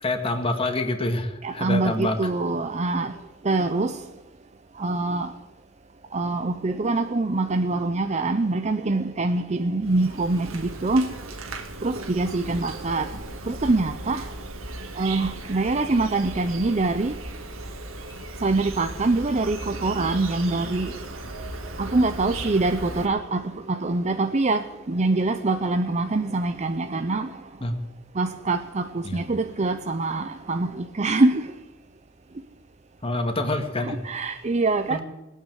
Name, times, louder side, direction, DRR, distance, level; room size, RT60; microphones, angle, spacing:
voice 1, 0.0-2.2 27.6-27.7 29.0-29.2 33.0-34.0 34.9-35.0, left 2 dB, 25° left, 5 dB, 1.9 m, -26 dB
voice 2, 1.4-3.1 3.4-4.0 4.8-5.3 6.1-11.1 11.8-13.1 13.5-14.2 15.0-17.1 18.4-20.9 21.8-27.3 28.2-31.4 33.8-35.0, right 2 dB, 35° right, 7 dB, 0.6 m, -24 dB
Insect, 9.8-23.1, right 2 dB, 85° right, 2.0 m, -36 dB
19.5 x 9.4 x 7.8 m, 1.1 s
head